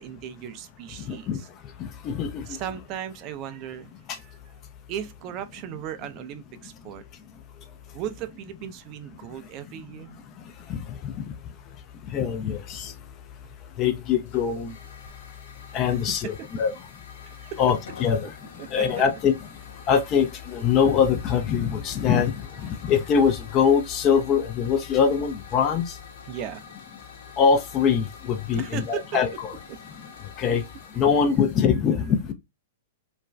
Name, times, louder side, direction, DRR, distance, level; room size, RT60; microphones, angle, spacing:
voice 1, 0.0-1.5 2.5-4.4 4.9-7.0 7.9-10.2 13.4-13.6 15.9-16.0 17.2-17.6 18.6-18.8 26.3-26.6 28.5-29.1, right 10 dB, 40° right, 0.4 m, -37 dB
voice 2, 1.1-1.4 2.0-2.4 10.7-10.8 11.0-11.1 12.1-12.9 13.8-14.7 15.7-16.7 17.6-18.3 18.7-19.4 19.9-25.9 27.4-29.6 30.4-30.6 31.0-32.3, left 7 dB, 35° left, 0.5 m, -23 dB
Hiss / Fire, 14.2-31.6, left 6 dB, 65° left, 0.9 m, -47 dB
2.5 x 2.2 x 3.1 m
hypercardioid pair, 110°, 0 cm